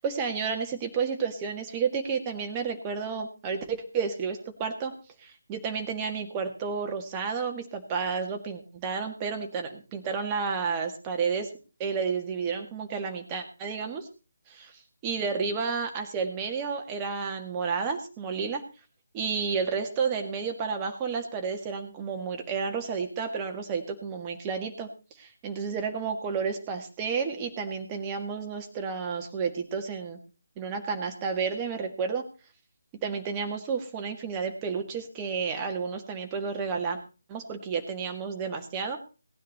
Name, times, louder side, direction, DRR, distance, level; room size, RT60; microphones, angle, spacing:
voice 1, 0.0-4.9 5.2-11.5 11.8-14.1 14.5-18.6 19.1-24.9 25.2-30.2 30.6-32.3 33.0-37.0 37.3-39.0, right 5 dB, 20° right, 3 dB, 1.8 m, -31 dB
18.0 x 10.0 x 4.2 m, 0.34 s
figure-of-eight pair, 150°, 0 cm